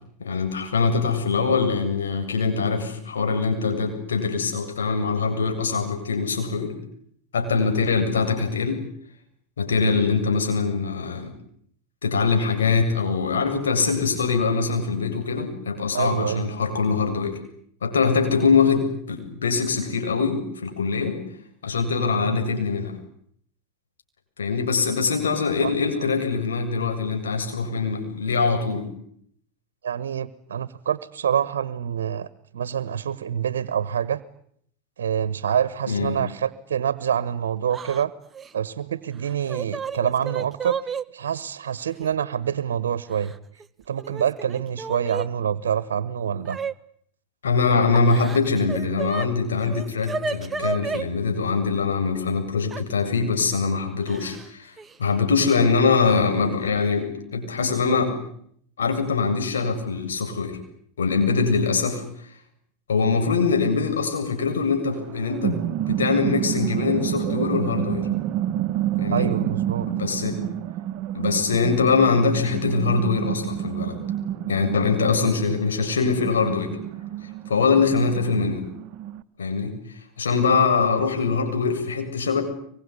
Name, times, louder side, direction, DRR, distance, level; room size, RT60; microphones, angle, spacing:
voice 1, 0.2-6.8 7.3-8.8 9.6-11.3 12.0-17.4 17.8-21.2 21.6-22.9 24.4-28.9 35.9-36.2 47.4-54.7 55.0-58.2 58.8-60.6 61.0-62.0 62.9-68.1 69.0-69.3 69.9-70.5 71.1-74.0 74.5-76.8 77.5-78.6 79.4-79.7 80.2-82.4, left 4 dB, 90° left, 4 dB, 7.6 m, -23 dB
voice 2, 15.9-16.5 22.2-22.5 25.6-25.7 29.8-32.3 32.5-34.2 35.0-38.1 38.5-43.3 43.9-46.6 69.1-69.9 75.1-75.4, right 8 dB, 85° right, 17 dB, 1.3 m, -26 dB
Yell / Crying sobbing, 37.7-38.0 38.3-38.5 39.3-41.0 42.0-42.1 43.1-43.7 44.0-45.3 46.5-46.7 47.9-49.3 49.6-51.1 52.7-52.8 54.1-54.5 54.8-54.9 56.1-56.2 56.6-56.9, right 5 dB, 20° right, 1.2 m, -32 dB
sound 1, 64.9-79.2, right 12 dB, 55° right, 1.4 m, -29 dB
24.5 x 23.0 x 9.9 m, 0.67 s
hypercardioid pair, 100°, 0 cm